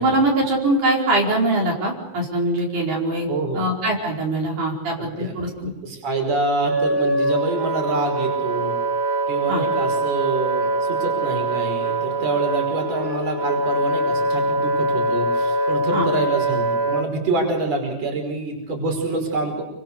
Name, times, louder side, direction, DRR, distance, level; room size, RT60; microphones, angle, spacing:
voice 1, 0.0-3.3 3.5-5.7 9.5-9.6 15.9-16.1, right 1 dB, 80° right, -2 dB, 6.5 m, -22 dB
voice 2, 3.3-3.6 5.0-8.7 9.3-19.6, right 3 dB, 60° right, 3 dB, 6.3 m, -26 dB
Wind instrument woodwind instrument, 6.2-17.1, right 2 dB, 35° right, 4.0 m, -23 dB
29.0 x 25.5 x 6.8 m, 0.93 s
omnidirectional pair, 3.4 m